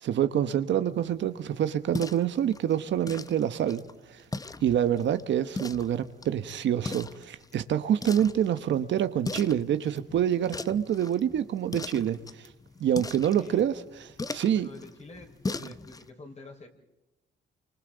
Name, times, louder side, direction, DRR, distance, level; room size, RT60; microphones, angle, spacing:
voice 1, 0.0-3.8 4.1-4.2 4.6-12.5 12.8-13.7 14.3-14.7, right 10 dB, 65° right, 10 dB, 1.1 m, -26 dB
sound 1, 0.9-16.1, left 3 dB, 20° left, 0.7 m, -40 dB
voice 2, 13.3-13.6 14.5-16.7, left 3 dB, 35° left, 1 dB, 5.1 m, -46 dB
29.5 x 25.0 x 4.0 m, 0.96 s
cardioid pair, 90°, 20 cm